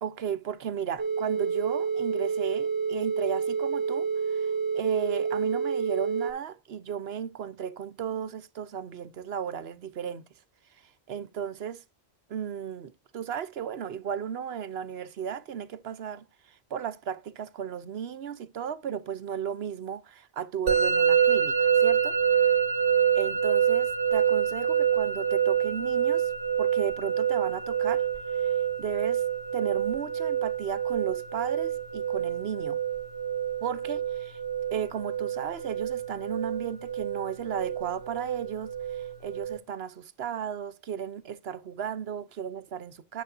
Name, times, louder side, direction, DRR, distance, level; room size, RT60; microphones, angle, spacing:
voice 1, 0.0-10.3 11.1-11.8 12.3-22.5 23.2-26.3 26.6-28.1 28.4-29.2 29.5-32.8 33.6-34.4 34.7-43.2, right 8 dB, 70° right, 1.0 m, -35 dB
sound 1, 1.0-6.3, right 5 dB, 20° right, 2.6 m, -28 dB
Musical instrument, 20.7-39.6, right 8 dB, 55° right, 1.5 m, -27 dB
9.5 x 7.6 x 2.6 m
omnidirectional pair, 1.1 m